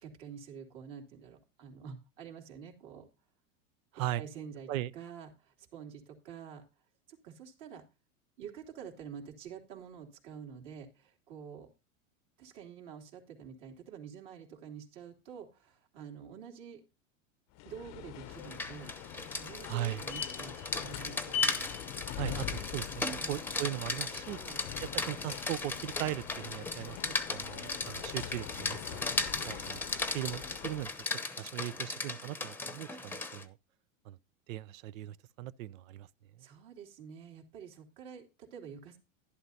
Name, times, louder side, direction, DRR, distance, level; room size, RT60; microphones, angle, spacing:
voice 1, 0.0-3.1 3.9-6.6 7.1-7.8 8.4-11.7 12.4-16.8 17.6-21.3 23.1-23.3 24.4-24.6 29.1-29.6 36.4-39.0, right 7 dB, 60° right, 3.0 m, -48 dB
sound 1, 17.6-31.1, left 9 dB, 40° left, 0.7 m, -42 dB
Rain, 18.3-33.4, left 3 dB, 5° left, 0.8 m, -37 dB
voice 2, 19.7-20.0 22.2-24.4 24.8-27.0 27.3-29.0 29.5-29.8 30.1-33.6 34.1-34.2 34.5-36.1, right 14 dB, 80° right, 0.6 m, -38 dB
11.5 x 11.0 x 2.8 m
supercardioid pair, 115°, 40 cm